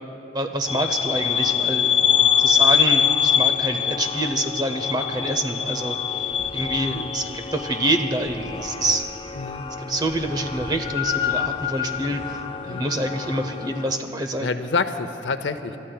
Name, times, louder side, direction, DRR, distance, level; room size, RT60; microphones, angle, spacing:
voice 1, 0.3-1.9 2.4-6.0 6.5-9.0 9.8-14.5, right 1 dB, 20° right, 6 dB, 0.7 m, -26 dB
sound 1, 0.7-14.0, left 8 dB, 30° left, 0.4 m, -24 dB
sound 2, 6.1-12.3, equal, ahead, 3.5 m, -45 dB
voice 2, 9.4-9.7 12.7-12.9 14.4-15.8, left 4 dB, 80° left, 10 dB, 0.6 m, -28 dB
27.0 x 14.0 x 2.3 m, 2.9 s
head